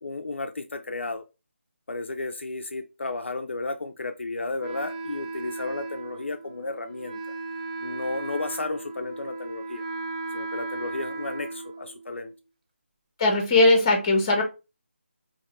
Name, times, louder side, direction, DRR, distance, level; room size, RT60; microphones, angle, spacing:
voice 1, 0.0-1.2 1.9-7.2 7.8-9.8 10.3-12.3, left 3 dB, 65° left, 0.3 m, -33 dB
Wind instrument woodwind instrument, 4.6-12.3, right 3 dB, 30° right, 0.4 m, -36 dB
voice 2, 13.2-14.4, left 2 dB, 20° left, 0.6 m, -19 dB
2.6 x 2.5 x 3.0 m
figure-of-eight pair, 155°, 7 cm